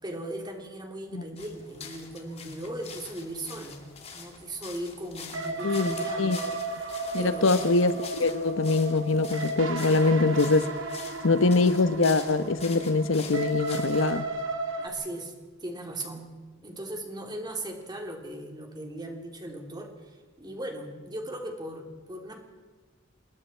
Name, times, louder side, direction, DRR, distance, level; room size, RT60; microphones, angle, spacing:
voice 1, 0.0-3.8 4.1-6.2 7.2-7.6 14.8-15.3 15.6-16.3 16.6-19.9 20.4-22.4, right 1 dB, 20° right, 3.4 m, -38 dB
sound 1, 1.4-14.2, left 5 dB, 35° left, 2.7 m, -45 dB
sound 2, 5.3-14.9, right 2 dB, 85° right, 2.8 m, -34 dB
voice 2, 5.6-6.4 7.1-10.7 11.2-14.3, left 3 dB, 90° left, 1.0 m, -23 dB
28.5 x 20.0 x 4.5 m
head